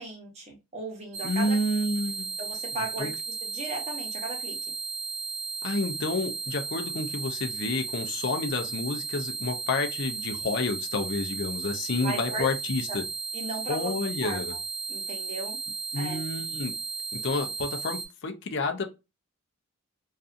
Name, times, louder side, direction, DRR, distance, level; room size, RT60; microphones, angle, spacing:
voice 1, 0.0-1.6 2.4-3.1 3.4-4.6 12.0-12.5 12.9-13.0 13.3-13.9 14.2-14.4 14.9-15.6 15.9-16.2, right 2 dB, 30° right, 0.8 m, -36 dB
sound 1, 1.1-18.1, right 5 dB, 85° right, 0.7 m, -35 dB
voice 2, 1.2-2.3 3.0-3.1 5.6-13.0 13.7-14.5 15.9-16.7 17.1-18.9, left 3 dB, 55° left, 0.5 m, -29 dB
2.6 x 2.4 x 2.4 m
head